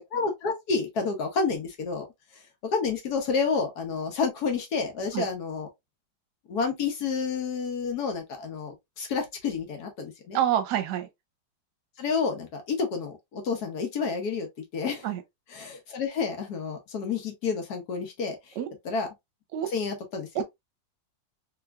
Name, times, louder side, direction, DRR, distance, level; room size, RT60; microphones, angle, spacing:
voice 1, 0.1-2.1 2.7-5.7 6.5-10.4 12.0-14.5 14.7-15.1 15.5-18.4 18.8-19.1 19.7-20.4, left 5 dB, 65° left, 1.4 m, -29 dB
voice 2, 10.3-11.1 15.0-15.2 18.6-18.7 19.5-19.7 20.3-20.4, right 11 dB, 70° right, 1.2 m, -26 dB
3.5 x 2.9 x 2.3 m
omnidirectional pair, 2.0 m